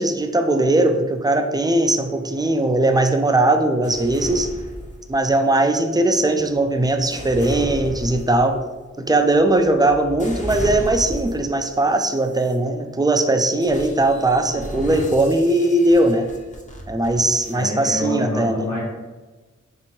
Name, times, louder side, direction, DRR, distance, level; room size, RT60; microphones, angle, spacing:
voice 1, 0.0-4.5 5.1-8.6 9.0-16.3 16.9-18.7, right 2 dB, 15° right, 6 dB, 0.3 m, -19 dB
sound 1, 3.8-5.4 6.1-11.6 12.2-12.6 13.6-17.6, left 1 dB, 25° left, 0.7 m, -34 dB
voice 2, 17.5-18.8, left 1 dB, 80° left, -11 dB, 1.3 m, -26 dB
2.9 x 2.6 x 4.4 m, 1.3 s
wide cardioid pair, 50°, 29 cm